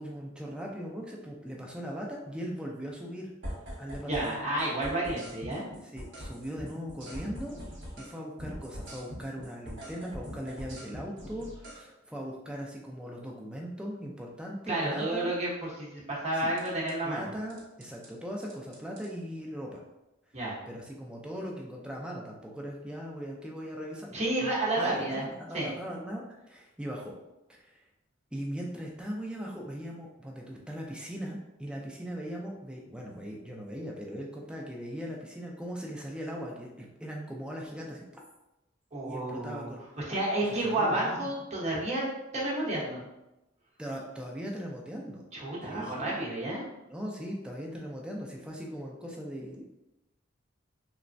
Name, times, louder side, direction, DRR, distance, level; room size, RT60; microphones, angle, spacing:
voice 1, 0.0-3.3 3.8-4.4 5.8-7.6 8.0-15.3 16.3-16.5 17.0-19.8 20.7-27.1 27.5-27.8 28.3-38.1 39.1-39.8 40.6-41.4 43.8-45.2 45.7-46.2 46.9-49.6, equal, 5° right, -2 dB, 0.3 m, -39 dB
sound 1, 3.4-4.3 4.6-8.1 8.4-11.8 16.6-16.9 17.5-18.1 18.4-19.1, equal, 65° right, 0.9 m, -42 dB
voice 2, 4.1-5.6 14.7-17.3 20.3-20.6 24.1-25.2 25.5-25.7 38.9-39.7 40.1-42.1 42.3-43.1 45.3-46.6, right 1 dB, 35° right, -6 dB, 0.8 m, -31 dB
3.2 x 2.0 x 2.5 m, 0.94 s
head